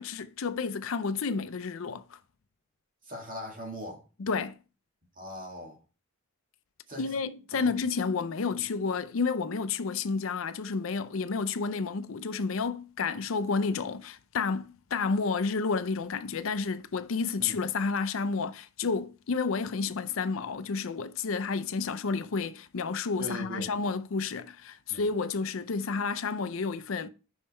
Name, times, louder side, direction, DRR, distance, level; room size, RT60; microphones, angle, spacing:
voice 1, 0.0-2.2 4.2-4.6 7.0-27.1, left 4 dB, 70° left, 0.5 m, -31 dB
voice 2, 3.0-4.0 5.2-5.8 6.9-7.1 7.5-7.9 8.5-8.6 17.4-17.6 23.2-23.7 24.9-25.0, equal, 40° right, 2.4 m, -40 dB
5.5 x 5.5 x 4.3 m
head